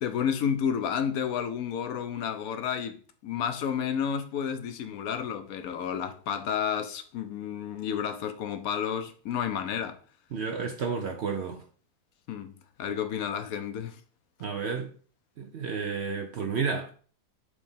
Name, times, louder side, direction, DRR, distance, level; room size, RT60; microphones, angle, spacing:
voice 1, 0.0-3.0 3.2-10.0 12.3-12.5 12.8-14.0, left 8 dB, 70° left, 1.0 m, -31 dB
voice 2, 10.3-11.6 14.4-14.9 15.4-16.9, right 5 dB, 60° right, 0.7 m, -31 dB
4.9 x 3.9 x 5.3 m
omnidirectional pair, 1.7 m